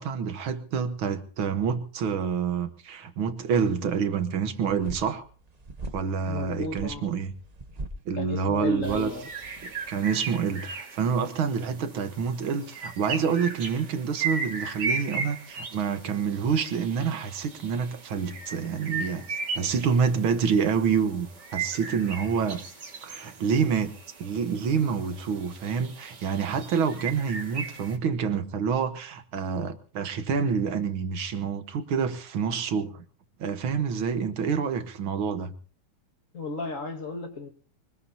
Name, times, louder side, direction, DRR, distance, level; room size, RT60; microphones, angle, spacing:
voice 1, 0.0-5.3 5.9-7.3 8.1-9.1 9.6-19.3 19.5-22.6 23.0-23.9 24.2-33.0 33.4-35.5, right 6 dB, 85° right, 2.1 m, -27 dB
sound 1, 4.6-10.0, right 2 dB, 35° right, 0.6 m, -42 dB
voice 2, 6.2-7.1 8.2-9.3 36.3-37.5, left 3 dB, 40° left, 2.1 m, -34 dB
sound 2, 8.8-28.0, right 4 dB, 55° right, 2.7 m, -37 dB
24.0 x 19.5 x 2.8 m
omnidirectional pair, 2.2 m